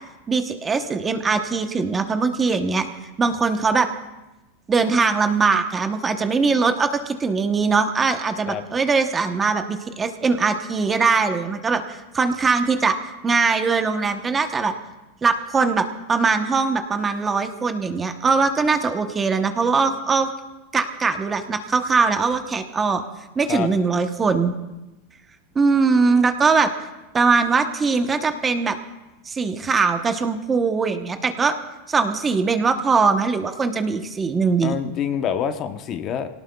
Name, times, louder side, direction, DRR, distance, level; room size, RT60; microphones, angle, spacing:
voice 1, 0.3-2.9 3.2-3.9 4.7-14.7 15.2-20.3 20.7-23.0 23.4-24.5 25.5-26.7 27.1-28.8 29.3-31.5 31.9-34.8, right 4 dB, 15° right, 7 dB, 0.9 m, -21 dB
voice 2, 34.6-36.3, left 8 dB, 35° left, 8 dB, 0.8 m, -26 dB
25.5 x 18.0 x 2.3 m, 1.0 s
supercardioid pair, 145°, 0 cm